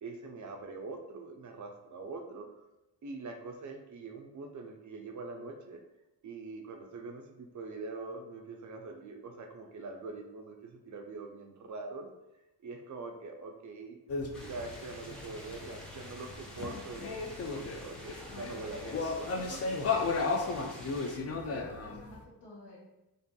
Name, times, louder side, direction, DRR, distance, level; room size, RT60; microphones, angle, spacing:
voice 1, 0.0-2.5 3.0-5.8 6.2-12.1 12.6-14.0 14.5-19.6, right 3 dB, 45° right, 4 dB, 0.4 m, -43 dB
sound 1, 14.1-22.2, left 4 dB, 35° left, 0.5 m, -35 dB
sound 2, 14.3-21.2, equal, ahead, 0.7 m, -49 dB
voice 2, 20.8-22.8, left 2 dB, 70° left, -5 dB, 1.1 m, -52 dB
2.6 x 2.5 x 2.2 m, 0.96 s
supercardioid pair, 55°, 42 cm